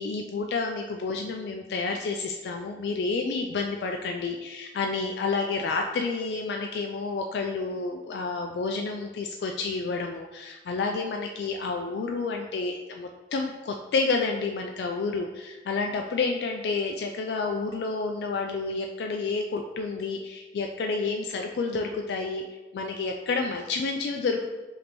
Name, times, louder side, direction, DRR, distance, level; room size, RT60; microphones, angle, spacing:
voice 1, 0.0-22.4 22.7-24.5, left 4 dB, 70° left, 3 dB, 0.3 m, -30 dB
5.1 x 2.9 x 2.9 m, 1.1 s
head